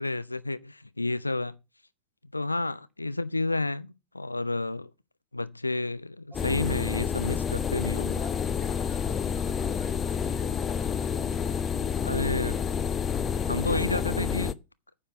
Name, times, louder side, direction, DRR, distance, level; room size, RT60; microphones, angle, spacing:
voice 1, 0.0-1.6 2.3-3.9 4.1-4.9 5.3-8.2 12.0-12.6 13.4-14.6, left 2 dB, 85° left, 0.5 m, -30 dB
sound 1, 6.3-14.5, left 7 dB, 20° left, 0.7 m, -29 dB
voice 2, 7.1-7.4 8.1-13.1, right 4 dB, 15° right, 3.0 m, -48 dB
9.5 x 5.5 x 8.1 m
figure-of-eight pair, 90°, 0 cm